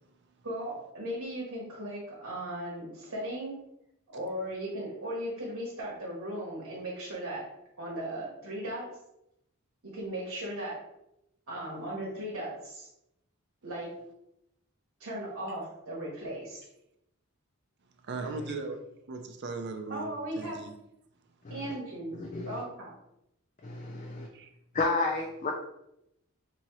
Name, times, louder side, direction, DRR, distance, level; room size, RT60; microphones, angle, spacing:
voice 1, 0.4-3.6 4.1-7.4 7.8-8.9 9.8-10.8 11.5-12.9 13.6-13.9 15.0-16.6 19.9-20.6 21.5-22.9, right 1 dB, 70° right, -6 dB, 1.1 m, -37 dB
voice 2, 18.1-18.8 19.1-20.1 20.4-20.7 24.3-24.5, right 3 dB, 50° right, 5 dB, 0.5 m, -37 dB
voice 3, 22.2-22.6 23.6-24.3 24.7-25.5, left 3 dB, 35° left, 0 dB, 0.4 m, -31 dB
4.3 x 2.7 x 3.0 m, 0.82 s
head